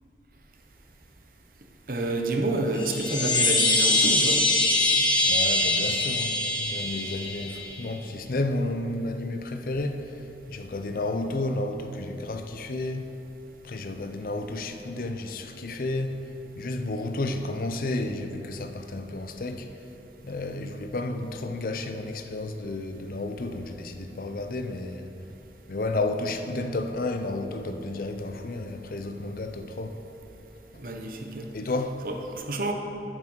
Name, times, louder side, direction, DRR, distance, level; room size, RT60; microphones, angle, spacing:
voice 1, 1.9-4.4 30.8-31.5 32.0-32.7, right 2 dB, 50° right, 3 dB, 0.8 m, -29 dB
sound 1, 2.7-7.8, left 2 dB, 25° left, 1.1 m, -23 dB
voice 2, 5.3-10.1 10.5-13.1 13.6-16.2 16.6-19.7 20.2-25.1 25.7-30.0 31.5-31.9, left 2 dB, 50° left, 7 dB, 0.5 m, -31 dB
8.7 x 6.0 x 6.3 m, 3.0 s
head